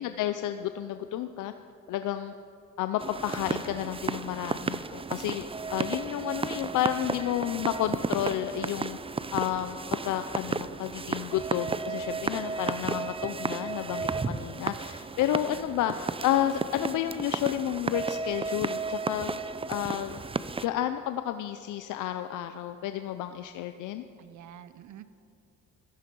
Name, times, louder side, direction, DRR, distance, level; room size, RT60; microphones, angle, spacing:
voice 1, 0.0-1.5 1.9-2.3 2.8-5.5 5.7-9.0 9.3-19.4 19.7-20.2 20.6-24.0, left 12 dB, 80° left, 9 dB, 0.6 m, -31 dB
sound 1, 3.0-20.7, right 4 dB, 20° right, 0.5 m, -33 dB
voice 2, 15.3-15.7 24.2-25.1, right 10 dB, 75° right, 13 dB, 0.9 m, -47 dB
15.5 x 14.5 x 5.4 m, 2.7 s
cardioid pair, 90°, 30 cm